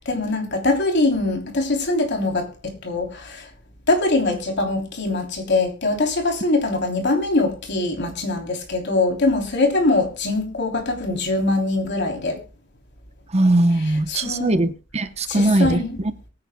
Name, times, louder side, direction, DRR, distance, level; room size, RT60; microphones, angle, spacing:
voice 1, 0.1-3.4 3.9-12.4 14.1-14.6 15.3-16.0, left 2 dB, 60° left, 3.2 m, -22 dB
voice 2, 13.3-16.1, right 1 dB, 30° right, 0.8 m, -20 dB
22.5 x 9.8 x 2.2 m
head